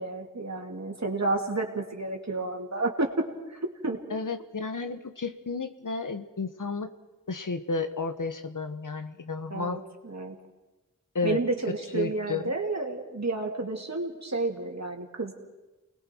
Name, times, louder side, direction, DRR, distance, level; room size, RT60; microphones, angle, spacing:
voice 1, 0.0-3.2 3.5-4.0 9.5-10.4 11.2-15.3, right 2 dB, 55° right, 2 dB, 2.8 m, -31 dB
voice 2, 4.1-6.9 7.3-9.8 11.1-11.4 11.9-12.5, left 4 dB, 70° left, 8 dB, 1.3 m, -32 dB
29.0 x 20.5 x 4.6 m, 1.1 s
wide cardioid pair, 45°, 33 cm